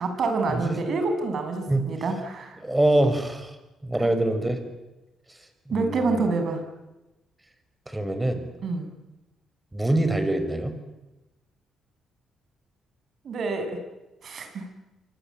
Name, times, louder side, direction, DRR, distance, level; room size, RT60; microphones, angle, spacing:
voice 1, 0.0-2.6 4.0-4.1 5.7-6.6 8.6-8.9 13.2-13.8 14.2-14.6, right 3 dB, 55° right, 6 dB, 7.4 m, -27 dB
voice 2, 2.6-3.5 3.8-4.6 5.7-6.3 7.9-8.4 9.7-10.7, right 1 dB, 10° right, 9 dB, 5.7 m, -24 dB
27.5 x 24.0 x 8.9 m, 1.0 s
cardioid pair, 90°, 0 cm